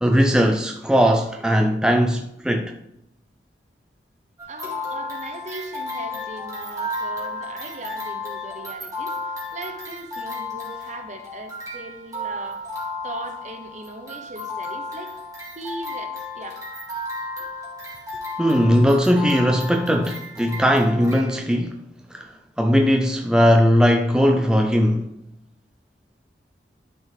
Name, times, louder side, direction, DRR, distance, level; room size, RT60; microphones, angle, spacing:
voice 1, 0.0-2.7 18.4-21.8 22.1-25.1, equal, 5° right, 0.4 m, -19 dB
sound 1, 4.4-21.4, left 2 dB, 20° right, 2.4 m, -33 dB
voice 2, 4.5-12.6 13.0-15.1 15.5-16.6, right 2 dB, 40° right, 1.0 m, -38 dB
11.5 x 4.6 x 3.9 m
head